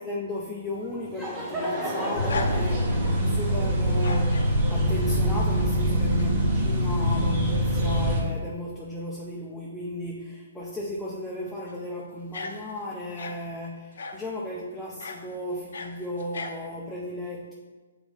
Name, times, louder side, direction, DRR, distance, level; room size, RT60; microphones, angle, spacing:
voice 1, 0.0-17.5, left 1 dB, 5° left, -5 dB, 0.6 m, -35 dB
Laughter / Crowd, 0.8-5.4, equal, 15° right, 1.2 m, -34 dB
sound 1, 1.5-3.1 3.9-4.5 5.8-6.3 6.7-6.8 8.2-8.3 8.5-8.7 11.5-11.8 12.3-13.4 14.0-14.3 15.0-15.2 15.5-16.6, left 4 dB, 70° left, 0.7 m, -37 dB
sound 2, 2.2-8.2, equal, 40° right, 1.8 m, -24 dB
7.6 x 3.8 x 3.4 m, 1.3 s
hypercardioid pair, 145°, 0 cm